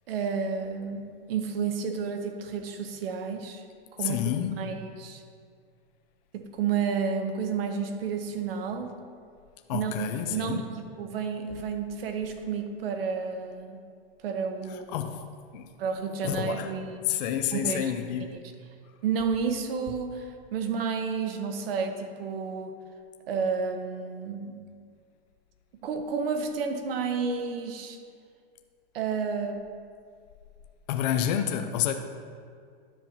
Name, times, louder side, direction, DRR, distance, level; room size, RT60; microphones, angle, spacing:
voice 1, 0.1-3.6 3.9-4.3 4.6-5.2 6.3-8.9 9.7-13.8 14.2-14.9 15.8-17.0 17.5-17.9 18.2-18.4 19.0-22.8 23.3-24.6 25.8-28.0 28.9-29.6, right 6 dB, 65° right, 6 dB, 0.9 m, -31 dB
voice 2, 4.0-4.7 9.7-10.6 14.9-15.2 15.5-15.6 16.2-16.7 17.1-18.3 30.9-31.9, left 10 dB, 45° left, 6 dB, 0.4 m, -29 dB
10.5 x 6.9 x 2.9 m, 2.1 s
supercardioid pair, 155°, 31 cm